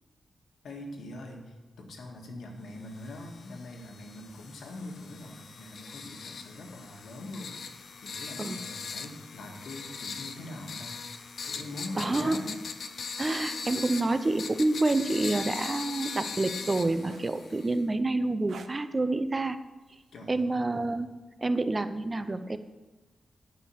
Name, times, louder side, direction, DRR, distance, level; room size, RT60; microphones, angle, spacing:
voice 1, 0.6-11.0 11.4-12.6 20.1-20.9, left 1 dB, 80° left, 2 dB, 1.8 m, -43 dB
sound 1, 2.9-17.8, left 5 dB, 55° left, 0.6 m, -40 dB
voice 2, 12.0-12.4 13.2-19.6 20.3-21.1 21.4-22.6, right 2 dB, 25° right, 11 dB, 0.6 m, -28 dB
sound 2, 13.1-13.5 15.5-15.8 17.1-17.5 18.5-18.8 20.2-20.4, right 6 dB, 70° right, 0.6 m, -46 dB
11.0 x 5.6 x 7.2 m, 1.2 s
wide cardioid pair, 130°, 0 cm